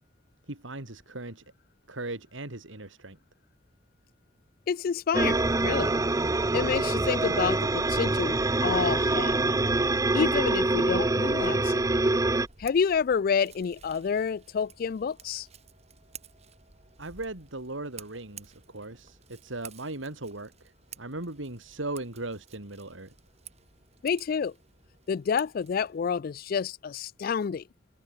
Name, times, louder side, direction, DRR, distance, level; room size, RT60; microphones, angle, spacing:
voice 1, 0.5-1.4 1.9-3.2 17.0-23.1, right 2 dB, 75° right, 3.0 m, -38 dB
voice 2, 4.7-5.9 6.5-8.3 8.6-9.4 10.1-11.7 12.6-15.5 24.0-24.5 25.1-27.6, left 6 dB, 45° left, 0.3 m, -28 dB
sound 1, 5.1-12.5, right 2 dB, 15° right, 0.6 m, -25 dB
Scissors, 12.3-26.0, right 7 dB, 35° right, 3.2 m, -52 dB
head